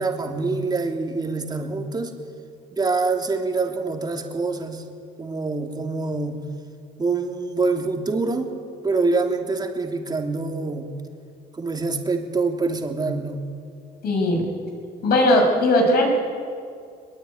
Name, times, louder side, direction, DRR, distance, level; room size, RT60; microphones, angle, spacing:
voice 1, 0.0-2.1 2.8-4.8 5.2-6.4 7.0-8.5 8.8-10.9 11.5-13.4, right 3 dB, 25° right, 3 dB, 3.1 m, -25 dB
voice 2, 14.0-14.5 15.0-16.0, left 1 dB, 65° left, 1 dB, 7.4 m, -18 dB
22.0 x 22.0 x 9.8 m, 2.4 s
cardioid pair, 110°, 17 cm